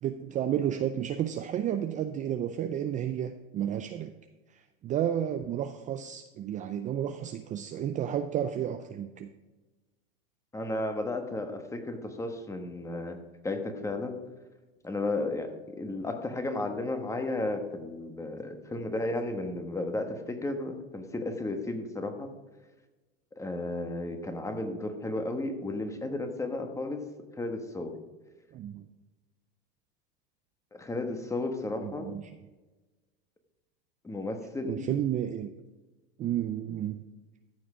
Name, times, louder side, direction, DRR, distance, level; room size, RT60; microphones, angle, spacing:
voice 1, 0.0-4.1 4.8-9.3 28.5-28.8 31.8-32.3 34.7-35.5 36.2-37.0, right 10 dB, 25° right, 8 dB, 0.4 m, -31 dB
voice 2, 10.5-13.2 13.4-14.2 14.8-22.3 23.4-27.1 27.4-27.9 30.7-32.1 34.0-34.9, left 2 dB, 10° left, 6 dB, 1.3 m, -33 dB
14.0 x 6.4 x 4.9 m, 1.2 s
supercardioid pair, 120°, 31 cm